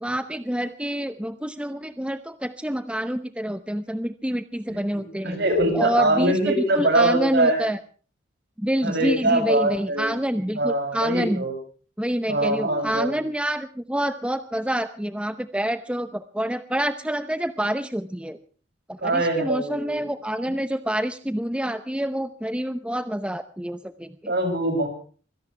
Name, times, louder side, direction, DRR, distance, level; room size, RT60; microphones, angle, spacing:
voice 1, 0.0-5.4 5.7-7.8 8.6-11.5 12.0-18.4 18.9-24.3, right 1 dB, 5° right, 10 dB, 0.8 m, -27 dB
voice 2, 5.2-7.6 8.8-10.1 10.5-11.6 12.3-13.2 19.0-20.0 24.3-24.9, right 1 dB, 60° right, 4 dB, 7.1 m, -23 dB
24.5 x 17.0 x 3.4 m, 0.41 s
head